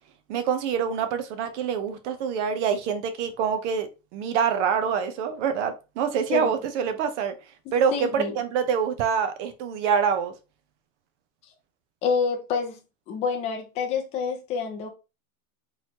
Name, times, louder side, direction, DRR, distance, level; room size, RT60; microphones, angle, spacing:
voice 1, 0.3-7.3 7.7-10.3, right 7 dB, 50° right, 0.8 m, -26 dB
voice 2, 7.9-8.4 12.0-12.8 13.1-14.9, left 5 dB, 15° left, 0.4 m, -27 dB
4.0 x 3.2 x 2.8 m
supercardioid pair, 150°, 45 cm